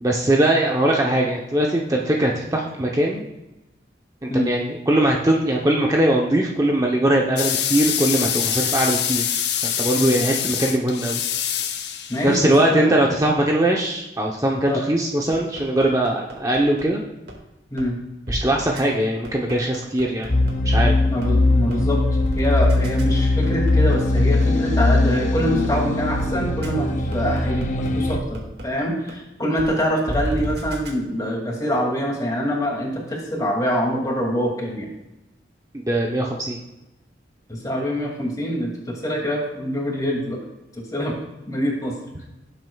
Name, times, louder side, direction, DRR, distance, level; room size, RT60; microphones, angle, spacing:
voice 1, 0.0-3.2 4.2-9.4 9.6-11.2 12.2-17.0 18.3-20.3 20.6-20.9 35.8-36.6, right 1 dB, 20° right, -1 dB, 0.8 m, -21 dB
sound 1, 7.4-12.4, left 9 dB, 70° left, 0.9 m, -25 dB
voice 2, 12.1-12.9 14.7-14.8 17.7-18.0 21.1-22.0 22.3-34.9 37.5-40.4 40.9-41.1 41.5-41.9, equal, 20° left, -1 dB, 2.4 m, -25 dB
sound 2, 15.3-16.8 17.3-17.4 17.8-17.9 18.3-18.4 18.8-18.9 19.2-20.8 21.2-21.3 21.7-21.8 22.2-24.7 25.2-25.3 25.6-25.7 26.1-26.3 26.6-26.7 27.1-28.6 29.1-29.2 29.6-29.7 30.1-30.9, equal, 65° right, 2.0 m, -31 dB
sound 3, 20.3-28.2, left 2 dB, 45° left, 0.8 m, -20 dB
16.5 x 7.8 x 2.3 m, 0.98 s
head